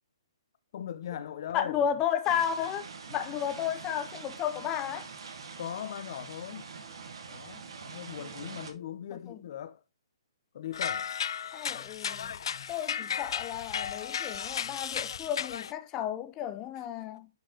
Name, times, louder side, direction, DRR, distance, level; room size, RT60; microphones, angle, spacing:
voice 1, 0.7-1.8 5.6-6.7 7.3-9.8 10.5-11.1, left 10 dB, 50° left, 0.8 m, -39 dB
voice 2, 1.5-5.1 9.1-9.4 11.5-12.4 12.7-17.3, left 9 dB, 20° left, 0.7 m, -33 dB
sound 1, 2.2-8.7, right 5 dB, 70° right, 1.5 m, -44 dB
sound 2, 10.7-15.7, left 8 dB, 65° left, 0.4 m, -34 dB
9.3 x 4.6 x 3.0 m
hypercardioid pair, 160°, 3 cm